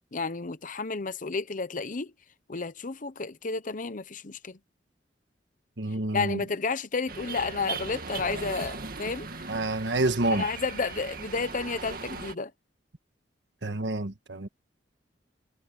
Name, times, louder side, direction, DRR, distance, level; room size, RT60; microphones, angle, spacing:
voice 1, 0.1-2.1 2.5-4.6 6.1-9.3 10.3-12.5, left 4 dB, 45° left, 0.9 m, -31 dB
voice 2, 5.8-6.4 9.5-10.5 13.6-14.5, right 2 dB, 70° right, 1.5 m, -28 dB
sound 1, 7.1-12.3, right 4 dB, 55° right, 2.0 m, -38 dB
head